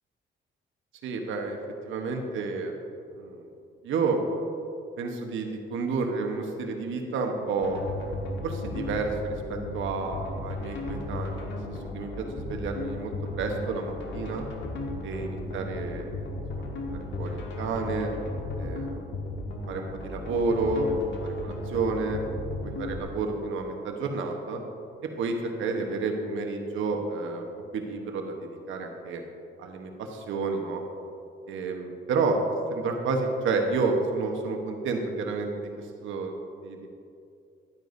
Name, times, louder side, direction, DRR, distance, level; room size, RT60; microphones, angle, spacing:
voice 1, 1.0-1.6 1.8-2.7 3.2-3.4 3.8-4.2 5.0-7.8 8.4-14.5 15.0-16.3 16.6-16.7 16.9-18.1 18.6-19.0 19.7-20.9 21.4-22.2 22.8-24.6 25.2-27.5 27.7-29.2 29.6-30.8 31.5-32.4 32.7-36.3 36.6-36.8, right 4 dB, 80° right, 3 dB, 1.1 m, -30 dB
sound 1, 7.6-23.0, left 2 dB, 65° left, 1.4 m, -35 dB
11.5 x 9.3 x 2.7 m, 2.6 s
cardioid pair, 90°, 20 cm